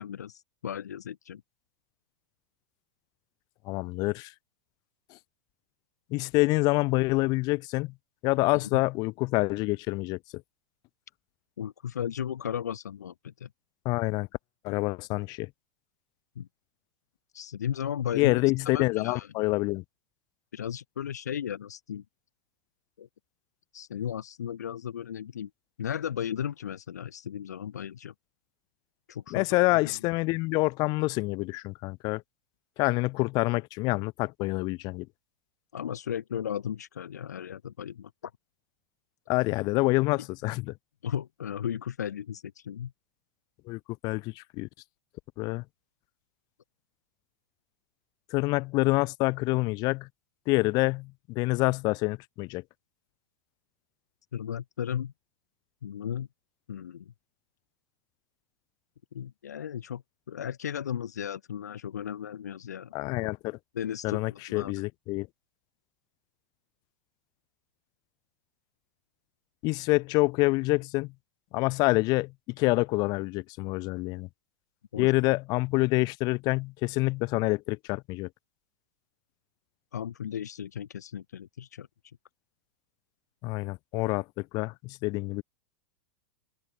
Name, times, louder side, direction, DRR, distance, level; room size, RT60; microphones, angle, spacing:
voice 1, 0.0-1.4 8.5-8.7 11.6-13.5 16.3-16.5 17.3-18.4 18.6-19.3 20.5-22.0 23.0-23.1 23.7-25.5 25.8-28.1 29.1-29.4 29.7-30.0 35.7-38.3 40.2-40.3 41.0-42.9 54.3-55.1 55.8-56.3 56.7-57.1 59.1-62.9 63.7-64.7 74.9-75.1 79.9-81.9, left 9 dB, 85° left, 1.2 m, -35 dB
voice 2, 3.6-4.3 5.1-5.2 6.1-7.9 8.2-10.2 13.9-14.3 14.6-15.5 18.1-19.8 29.3-32.2 32.8-35.1 39.3-40.7 43.7-44.7 45.4-45.6 48.3-50.1 50.5-52.6 62.9-63.6 64.0-65.3 69.6-71.1 71.5-74.3 75.0-78.3 83.4-85.4, left 23 dB, 45° left, 2.1 m, -27 dB
open air
hypercardioid pair, 105°, 9 cm